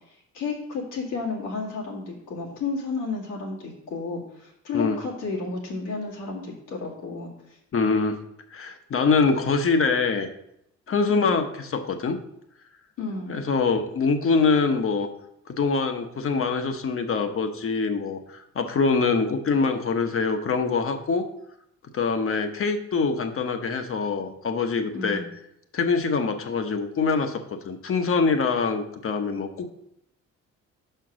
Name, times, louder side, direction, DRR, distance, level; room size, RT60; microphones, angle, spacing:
voice 1, 0.1-7.3 11.1-11.4 13.0-13.4 24.9-25.3, left 4 dB, 85° left, -2 dB, 2.0 m, -32 dB
voice 2, 7.7-8.2 8.5-10.3 10.9-12.2 13.3-15.1 15.5-21.3 21.9-25.2 25.7-29.7, left 4 dB, 45° left, 7 dB, 0.9 m, -24 dB
5.8 x 4.5 x 6.2 m, 0.77 s
cardioid pair, 90°, 30 cm